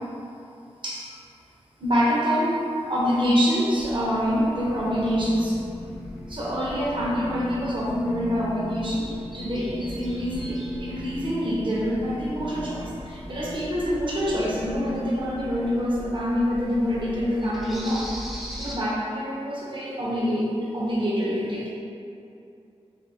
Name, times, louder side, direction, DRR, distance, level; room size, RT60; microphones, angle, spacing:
voice 1, 0.8-1.1 1.8-5.6 6.3-18.1 18.6-20.5 20.7-21.7, equal, 50° right, -6 dB, 0.7 m, -26 dB
sound 1, 3.1-16.7, left 2 dB, 70° left, 0.4 m, -41 dB
sound 2, 3.8-18.7, equal, ahead, 0.5 m, -41 dB
2.9 x 2.2 x 3.3 m, 2.6 s
wide cardioid pair, 55°, 11 cm